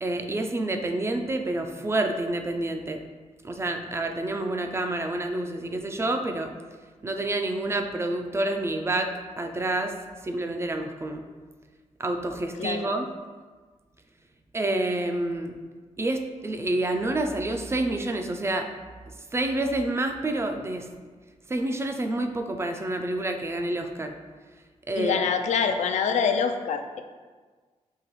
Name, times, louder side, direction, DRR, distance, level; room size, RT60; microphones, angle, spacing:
voice 1, 0.0-3.0 3.4-6.5 7.0-9.1 9.4-9.9 10.2-11.2 12.0-13.1 14.5-15.6 16.0-18.7 19.3-20.9 21.5-24.2 24.9-25.2, right 2 dB, 20° right, 5 dB, 0.3 m, -28 dB
voice 2, 12.6-12.9 24.9-27.0, left 6 dB, 70° left, 7 dB, 0.4 m, -25 dB
5.5 x 2.9 x 3.0 m, 1.4 s
wide cardioid pair, 120°, 12 cm